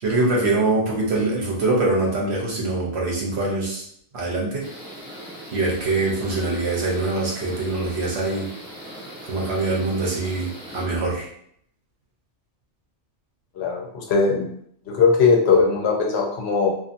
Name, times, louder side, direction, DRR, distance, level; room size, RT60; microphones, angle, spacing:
voice 1, 0.0-3.8 4.1-4.7 5.5-8.5 9.2-11.3, right 2 dB, 65° right, -3 dB, 1.0 m, -23 dB
sound 1, 4.6-10.8, equal, 5° right, 1.1 m, -39 dB
voice 2, 13.6-14.5 14.9-16.7, left 4 dB, 65° left, 0 dB, 0.9 m, -19 dB
2.7 x 2.5 x 2.5 m, 0.68 s
omnidirectional pair, 1.2 m